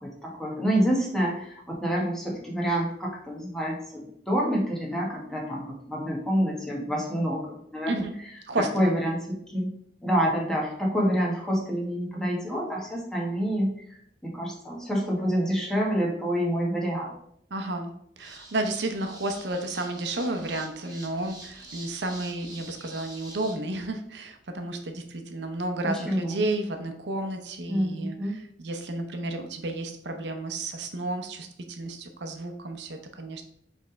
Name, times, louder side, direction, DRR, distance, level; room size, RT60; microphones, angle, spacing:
voice 1, 0.0-8.0 8.7-9.7 10.0-17.1 25.9-26.4 27.7-28.4, equal, 5° left, -3 dB, 1.4 m, -27 dB
voice 2, 8.5-8.9 17.5-33.4, right 2 dB, 75° right, 6 dB, 0.7 m, -32 dB
sound 1, 18.2-23.5, right 2 dB, 25° right, 1.6 m, -46 dB
5.3 x 3.4 x 5.1 m, 0.68 s
head